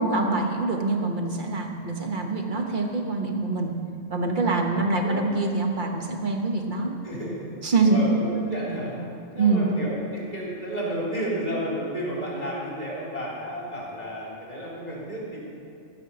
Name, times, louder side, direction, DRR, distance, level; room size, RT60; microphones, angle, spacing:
voice 1, 0.0-3.7 4.1-6.9 7.6-8.0 9.3-9.7, right 3 dB, 45° right, 2 dB, 1.3 m, -25 dB
voice 2, 4.7-5.2 7.0-7.4 7.8-9.0 9.3-15.4, right 1 dB, 35° left, -5 dB, 3.5 m, -32 dB
14.5 x 5.8 x 6.9 m, 2.4 s
omnidirectional pair, 1.2 m